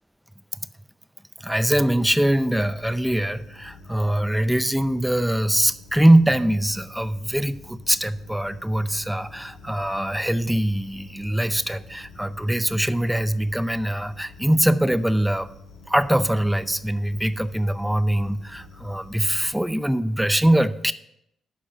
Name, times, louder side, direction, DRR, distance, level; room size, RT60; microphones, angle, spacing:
voice 1, 1.4-15.5 15.9-20.9, right 1 dB, 5° right, 14 dB, 0.4 m, -22 dB
sound 1, 1.5-19.5, left 2 dB, 80° left, 1.9 m, -47 dB
8.4 x 5.4 x 6.4 m, 0.78 s
cardioid pair, 90°, 0 cm